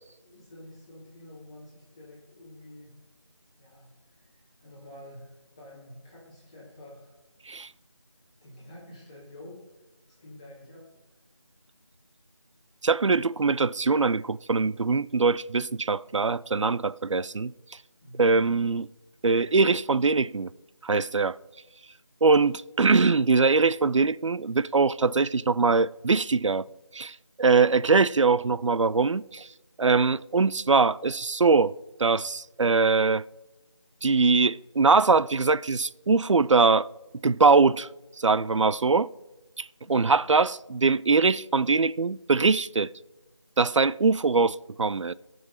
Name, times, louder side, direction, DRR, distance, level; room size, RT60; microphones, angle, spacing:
voice 1, 0.2-3.0 3.6-7.2 8.4-11.2 18.0-18.4 39.8-40.2, left 1 dB, 10° left, 2.1 m, -49 dB
voice 2, 12.8-17.5 18.2-18.9 19.2-20.5 20.8-21.3 22.2-26.7 26.9-29.5 29.8-31.7 32.0-33.2 34.0-36.9 37.2-37.9 38.2-39.1 39.6-42.9 43.6-45.1, right 4 dB, 85° right, 0.4 m, -22 dB
15.0 x 6.3 x 4.4 m
figure-of-eight pair, 175°, 15 cm